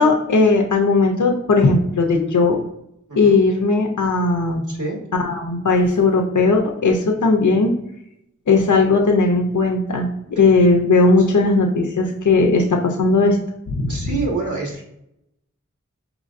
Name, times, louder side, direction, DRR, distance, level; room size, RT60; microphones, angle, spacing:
voice 1, 0.0-2.6 3.2-4.6 5.2-7.7 8.5-13.4 13.7-13.9, left 3 dB, 80° left, 2 dB, 0.6 m, -17 dB
voice 2, 4.7-5.0 10.3-10.5 13.9-14.8, right 3 dB, 85° right, -3 dB, 1.5 m, -27 dB
5.2 x 3.1 x 2.4 m, 0.80 s
wide cardioid pair, 60°, 30 cm